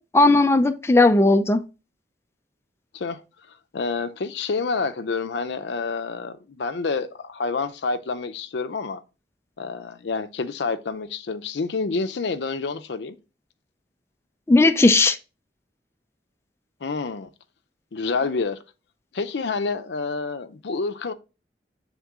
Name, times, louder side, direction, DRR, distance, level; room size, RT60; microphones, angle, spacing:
voice 1, 0.1-1.6 14.5-15.2, left 2 dB, 15° left, 0.3 m, -16 dB
voice 2, 3.7-9.0 9.6-13.2 16.8-17.3 17.9-18.6 19.1-21.1, left 4 dB, 75° left, 0.5 m, -28 dB
7.2 x 3.6 x 3.6 m
head